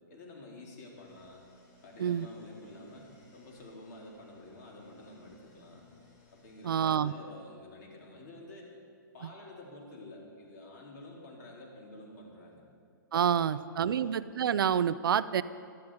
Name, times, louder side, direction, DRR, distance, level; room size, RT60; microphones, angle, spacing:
voice 1, 0.1-1.4 1.8-5.9 6.3-8.7 9.1-12.6 13.2-14.1, left 1 dB, 55° left, -2 dB, 3.9 m, -50 dB
sound 1, 0.9-6.8, left 3 dB, 30° left, 3.4 m, -62 dB
voice 2, 6.6-7.1 13.1-15.4, right 8 dB, 75° right, 15 dB, 0.6 m, -28 dB
17.0 x 12.5 x 5.0 m, 2.2 s
hypercardioid pair, 150°, 12 cm